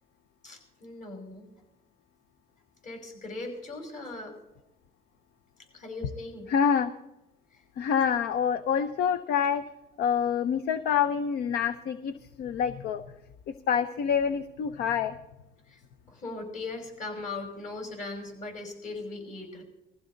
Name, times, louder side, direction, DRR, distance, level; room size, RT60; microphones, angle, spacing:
voice 1, 0.4-1.5 2.8-4.4 5.7-6.5 7.5-7.6 8.0-8.1 15.7-15.8 16.1-19.6, left 3 dB, 50° left, 2 dB, 5.7 m, -39 dB
voice 2, 6.5-6.9 7.8-9.6 10.0-13.0 13.5-15.2, left 7 dB, 70° left, 12 dB, 0.8 m, -27 dB
20.0 x 15.0 x 3.9 m, 0.94 s
cardioid pair, 110°, 17 cm